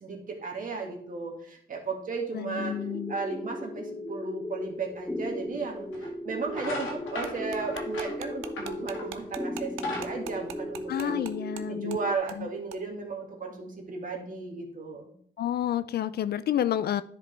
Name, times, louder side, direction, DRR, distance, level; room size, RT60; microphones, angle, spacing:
voice 1, 0.0-2.8 3.1-11.3 11.7-15.1, right 4 dB, 45° right, 2 dB, 2.0 m, -35 dB
voice 2, 2.3-3.1 10.9-12.0 12.4-12.5 15.4-17.0, left 10 dB, 55° left, 15 dB, 0.4 m, -29 dB
sound 1, 2.6-12.2, left 1 dB, 5° left, 0.6 m, -37 dB
sound 2, 5.2-5.3 5.9-6.1 6.5-9.2 9.6-11.2, left 2 dB, 80° left, 1.8 m, -37 dB
sound 3, 7.2-11.6 11.9-12.0 12.3-12.4 12.7-12.8, right 10 dB, 90° right, 0.6 m, -41 dB
10.5 x 5.0 x 3.4 m, 0.62 s
cardioid pair, 90°, 20 cm